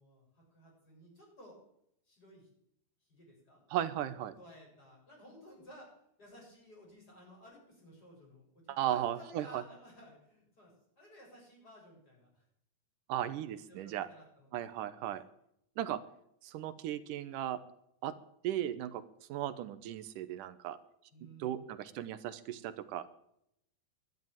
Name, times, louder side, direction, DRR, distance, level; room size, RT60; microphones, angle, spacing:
voice 1, 0.0-1.6 2.1-2.5 3.0-3.6 4.1-5.9 6.2-12.4 13.7-15.0 21.1-21.8, equal, 25° left, -2 dB, 7.6 m, -56 dB
voice 2, 3.7-4.3 8.7-9.6 13.1-14.1 14.5-15.2 15.8-16.0 16.4-17.6 18.0-18.1 18.4-19.0 19.3-20.8 21.4-23.1, right 11 dB, 75° right, 12 dB, 2.2 m, -36 dB
12.0 x 11.0 x 9.0 m, 0.75 s
omnidirectional pair, 4.1 m